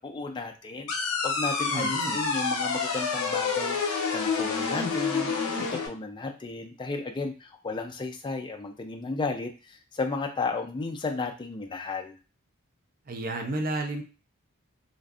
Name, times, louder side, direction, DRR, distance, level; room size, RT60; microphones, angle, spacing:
voice 1, 0.0-5.3 5.6-12.1, left 3 dB, 20° left, 4 dB, 0.3 m, -34 dB
sound 1, 0.9-5.9, left 5 dB, 80° left, 0.5 m, -28 dB
voice 2, 1.7-2.2 13.1-14.0, right 2 dB, 40° right, 4 dB, 0.5 m, -31 dB
2.5 x 2.4 x 2.3 m, 0.33 s
head